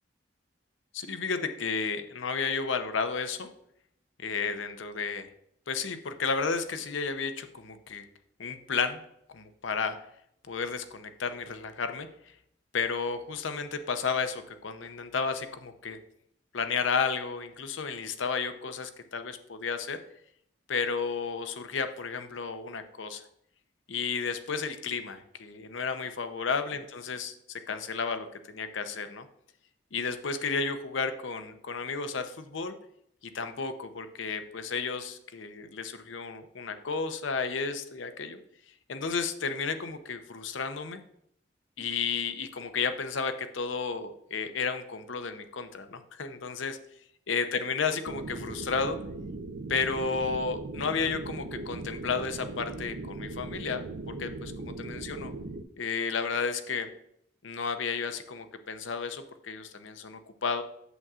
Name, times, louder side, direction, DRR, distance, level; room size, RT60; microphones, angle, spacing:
voice 1, 0.9-3.5 4.2-5.3 5.7-8.0 8.4-9.0 9.3-10.0 10.5-12.1 12.7-16.0 16.5-20.0 20.7-23.3 23.9-27.3 27.7-29.3 29.9-32.7 33.3-38.4 38.9-41.0 41.8-46.8 47.3-49.0 49.7-53.8 54.1-55.3 55.8-56.9 57.4-60.6, left 5 dB, 90° left, 9 dB, 0.7 m, -32 dB
sound 1, 48.0-55.6, right 2 dB, 80° right, 0.6 m, -39 dB
8.2 x 7.3 x 2.4 m, 0.73 s
head